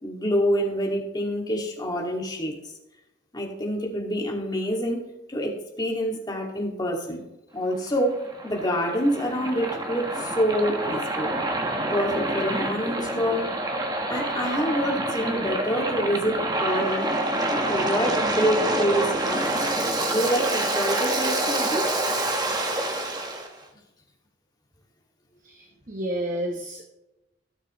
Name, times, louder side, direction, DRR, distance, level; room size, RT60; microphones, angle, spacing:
voice 1, 0.0-2.6 3.3-5.0 5.3-7.2 7.5-11.3 11.9-13.5 14.1-17.1 17.5-19.7 20.1-22.0, equal, 20° left, 0 dB, 2.2 m, -27 dB
Waves surf, 7.7-23.5, right 1 dB, 20° right, 1.3 m, -27 dB
voice 2, 25.4-26.8, right 1 dB, 45° right, 2 dB, 1.0 m, -31 dB
17.0 x 6.6 x 3.1 m, 0.95 s
head